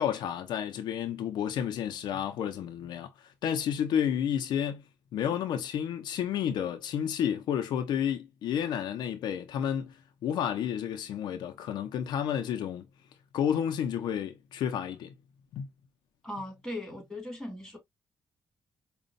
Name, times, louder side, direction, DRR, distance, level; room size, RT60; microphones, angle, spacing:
voice 1, 0.0-3.1 3.4-4.8 5.1-9.9 10.2-12.8 13.3-15.1 15.5-15.7, left 9 dB, 85° left, 0.7 m, -31 dB
voice 2, 16.2-17.8, left 1 dB, 5° left, 2.4 m, -38 dB
5.3 x 2.4 x 2.5 m
cardioid pair, 105°, 7 cm